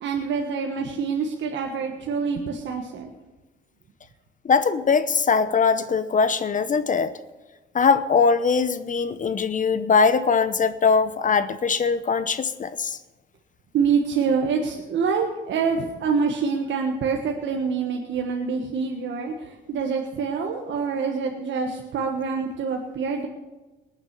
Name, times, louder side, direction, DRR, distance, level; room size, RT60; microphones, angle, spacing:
voice 1, 0.0-3.1 13.7-23.3, right 5 dB, 70° right, 2 dB, 1.5 m, -26 dB
voice 2, 4.4-7.1 7.7-13.0, left 5 dB, 40° left, 13 dB, 0.8 m, -21 dB
19.5 x 7.4 x 6.7 m, 1.2 s
cardioid pair, 90°, 20 cm